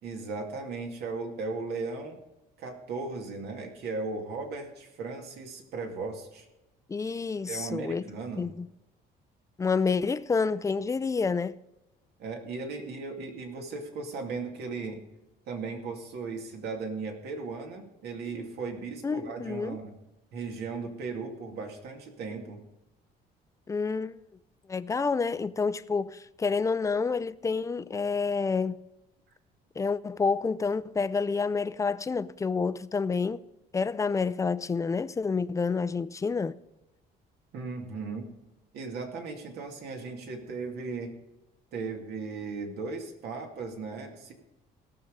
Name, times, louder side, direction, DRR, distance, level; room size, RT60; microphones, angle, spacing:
voice 1, 0.0-2.2 2.6-6.5 7.5-8.5 12.2-15.0 15.5-19.9 20.3-22.6 37.5-38.2 38.7-41.1 41.7-44.3, right 4 dB, 75° right, 2.4 m, -37 dB
voice 2, 6.9-8.0 8.4-8.7 9.6-11.6 19.0-19.8 23.7-24.2 24.7-28.8 29.8-33.4 33.7-36.6, left 4 dB, 20° left, 0.5 m, -28 dB
17.5 x 6.8 x 5.2 m
cardioid pair, 110°, 17 cm